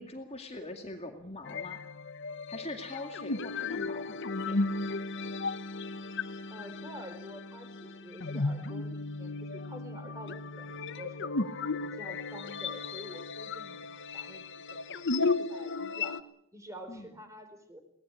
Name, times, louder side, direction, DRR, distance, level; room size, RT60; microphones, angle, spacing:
voice 1, 0.0-1.8 2.5-4.2 4.4-4.6 16.9-17.1, left 2 dB, 30° left, 4 dB, 2.3 m, -42 dB
sound 1, 1.4-16.2, left 3 dB, 55° left, 1.0 m, -35 dB
voice 2, 6.5-11.3 11.8-13.9 14.1-16.2 16.5-17.8, equal, 15° right, 7 dB, 4.2 m, -48 dB
23.0 x 19.0 x 8.5 m, 0.73 s
head